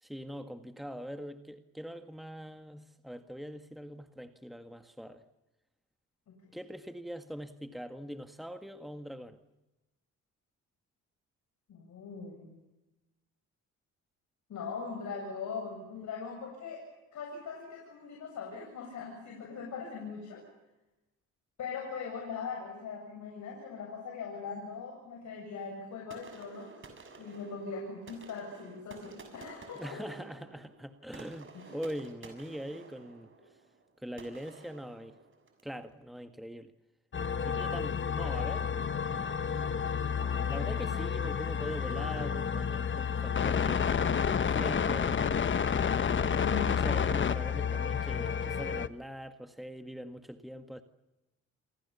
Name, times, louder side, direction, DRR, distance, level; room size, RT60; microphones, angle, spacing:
voice 1, 0.0-5.2 6.5-9.4 29.7-33.3 34.0-35.2 35.6-36.7 37.4-38.7 39.2-39.9 40.5-43.9 44.1-45.3 46.1-50.8, equal, ahead, 8 dB, 1.9 m, -43 dB
voice 2, 11.7-12.6 14.5-20.4 21.6-26.7 27.2-30.0 31.5-31.7 46.4-47.1, left 5 dB, 70° left, 0 dB, 8.0 m, -41 dB
sound 1, 26.1-35.7, right 3 dB, 40° right, 6.7 m, -52 dB
sound 2, 37.1-48.9, left 7 dB, 40° left, 1.3 m, -30 dB
29.5 x 24.0 x 7.2 m, 1.0 s
cardioid pair, 90°, 30 cm